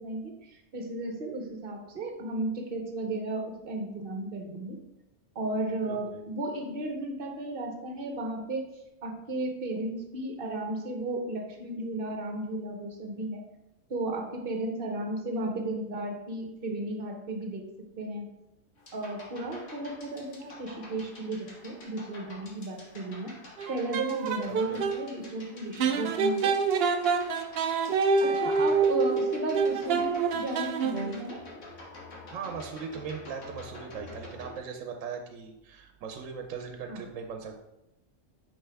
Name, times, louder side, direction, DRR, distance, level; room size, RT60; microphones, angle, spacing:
voice 1, 0.0-4.8 5.3-8.7 9.0-13.4 13.9-17.7 18.0-18.3 18.9-23.3 23.7-26.6 28.2-31.4 36.9-37.0, right 2 dB, 50° right, 3 dB, 1.0 m, -34 dB
voice 2, 5.9-6.2 24.5-24.8 28.6-28.8 32.3-37.6, right 6 dB, 80° right, 5 dB, 1.0 m, -39 dB
sound 1, 18.8-34.6, left 2 dB, 75° left, 1.7 m, -48 dB
sound 2, 23.6-25.0 25.8-31.3, right 4 dB, 65° right, 0.6 m, -27 dB
5.5 x 5.3 x 3.4 m, 0.89 s
omnidirectional pair, 1.3 m